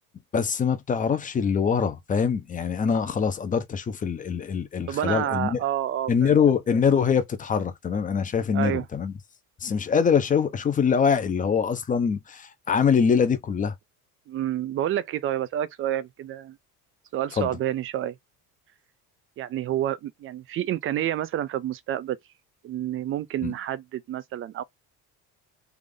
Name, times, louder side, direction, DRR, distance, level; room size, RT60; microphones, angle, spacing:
voice 1, 0.3-5.6 6.1-9.1 9.6-13.7 17.4-17.5 23.4-23.5, left 6 dB, 25° left, 0.6 m, -24 dB
voice 2, 4.9-6.4 8.5-8.8 14.3-16.6 17.1-18.2 19.4-22.2 22.6-24.6, right 12 dB, 40° right, 0.4 m, -29 dB
3.4 x 2.5 x 3.6 m
cardioid pair, 140°, 34 cm